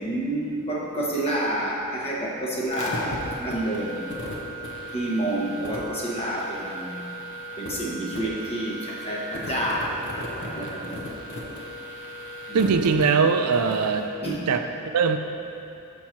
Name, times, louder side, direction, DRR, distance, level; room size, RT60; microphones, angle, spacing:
voice 1, 0.0-4.1 4.9-7.2 7.6-9.9 10.5-11.1 12.5-12.7 14.2-14.4, right 1 dB, 25° left, -4 dB, 1.1 m, -29 dB
sound 1, 2.7-14.0, equal, 55° left, 1.0 m, -36 dB
voice 2, 12.5-14.1 14.5-15.2, right 5 dB, 85° right, 7 dB, 0.4 m, -21 dB
6.2 x 4.5 x 5.8 m, 2.7 s
head